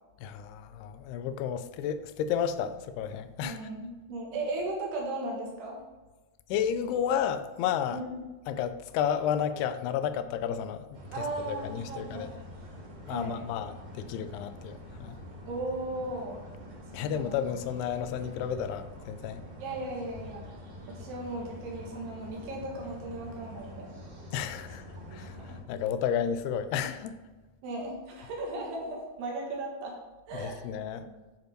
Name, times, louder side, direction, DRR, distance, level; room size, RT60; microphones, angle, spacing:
voice 1, 0.2-3.6 6.5-8.0 8.5-12.3 13.0-15.2 16.9-19.4 24.3-24.9 25.1-27.2 30.3-31.1, left 8 dB, 85° left, 2.6 m, -32 dB
voice 2, 3.4-5.8 7.9-8.1 11.1-12.3 13.1-13.5 15.5-16.4 17.0-17.4 19.6-20.4 20.9-23.9 25.0-25.4 27.6-29.9 30.3-30.7 31.0-31.1, right 2 dB, 80° right, 3.7 m, -36 dB
sound 1, 10.9-25.6, left 1 dB, 45° right, 3.1 m, -46 dB
9.4 x 5.2 x 4.5 m
omnidirectional pair, 4.6 m